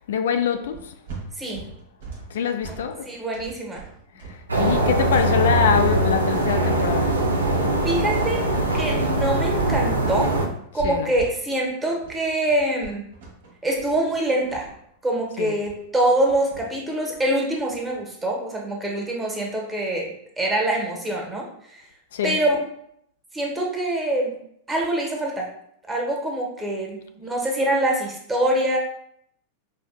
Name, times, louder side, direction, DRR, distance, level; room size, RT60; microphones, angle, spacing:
voice 1, 0.1-0.9 2.3-3.1 4.3-7.2 10.8-11.1 15.4-15.5 22.1-22.4, left 7 dB, 70° left, 0.3 m, -24 dB
sound 1, 0.7-9.0 9.2-18.0, right 5 dB, 65° right, 1.1 m, -41 dB
voice 2, 3.0-3.8 7.8-8.5 8.7-10.4 10.7-13.1 13.6-14.7 15.0-21.8 22.2-22.6 23.3-24.4 24.7-25.5 25.9-28.8, right 1 dB, 15° right, 1.1 m, -24 dB
sound 2, 4.5-10.5, right 1 dB, 90° right, 0.5 m, -22 dB
5.1 x 2.6 x 2.2 m
hypercardioid pair, 95°, 0 cm